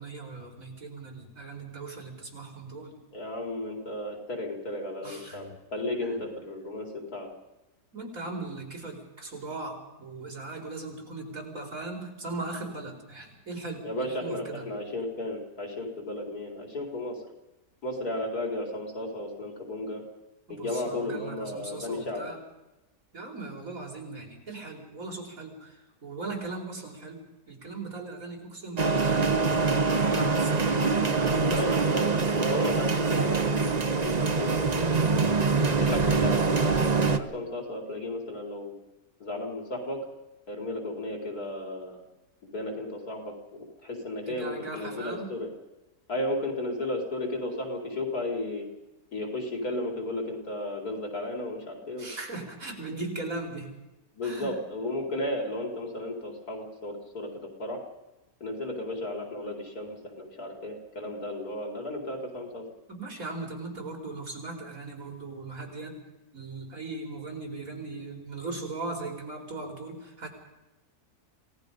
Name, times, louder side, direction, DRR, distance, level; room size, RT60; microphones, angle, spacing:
voice 1, 0.0-3.0 5.0-5.5 7.9-14.6 20.5-22.4 23.1-29.6 29.9-30.8 31.2-32.0 44.3-45.3 52.0-53.7 54.2-54.6 62.9-66.0 66.3-70.3, right 3 dB, 65° right, 2 dB, 5.0 m, -39 dB
voice 2, 3.1-7.3 13.8-17.2 17.8-20.0 20.5-22.3 31.5-33.7 34.0-35.4 35.8-38.7 39.2-40.0 40.5-42.0 42.4-45.5 46.1-48.7 49.1-52.1 54.1-57.8 58.4-62.6, left 1 dB, 80° left, 1 dB, 4.9 m, -34 dB
sound 1, 28.8-37.2, right 4 dB, 30° right, 1.0 m, -24 dB
27.5 x 18.5 x 5.4 m, 1.0 s
omnidirectional pair, 1.6 m